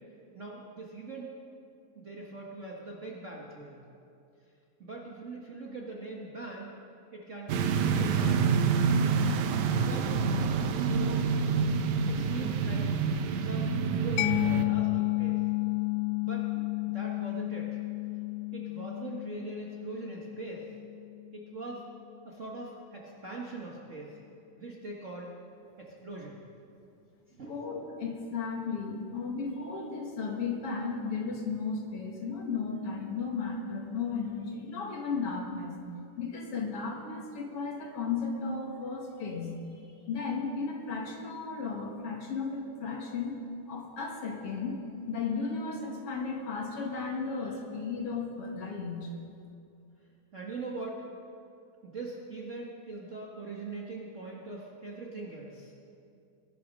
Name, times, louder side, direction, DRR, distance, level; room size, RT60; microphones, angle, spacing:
voice 1, 0.3-1.3 1.9-3.8 4.8-6.7 7.1-9.2 9.7-10.1 10.9-11.3 12.1-13.0 13.3-15.4 16.2-17.8 18.5-20.7 21.3-21.8 22.2-24.2 24.5-25.3 25.8-26.4 27.3-27.6 50.3-51.0 51.8-55.7, right 3 dB, 90° right, -3 dB, 0.6 m, -42 dB
sound 1, 7.5-14.7, right 5 dB, 70° right, 1.9 m, -27 dB
Mallet percussion, 14.2-21.6, left 21 dB, 80° left, 2.0 m, -32 dB
voice 2, 27.5-35.7 36.2-39.5 40.1-43.4 43.7-44.8 45.1-49.1, left 4 dB, 45° left, 0 dB, 2.5 m, -34 dB
22.0 x 12.0 x 5.4 m, 2.5 s
omnidirectional pair, 4.1 m